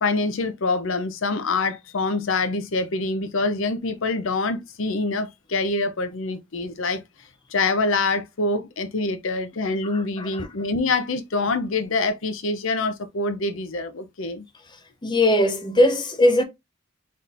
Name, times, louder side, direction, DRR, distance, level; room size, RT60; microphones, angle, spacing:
voice 1, 0.0-7.0 7.5-14.4, left 3 dB, 65° left, 0.6 m, -25 dB
voice 2, 15.0-16.4, left 1 dB, 20° left, 0.6 m, -19 dB
4.2 x 3.6 x 2.5 m
head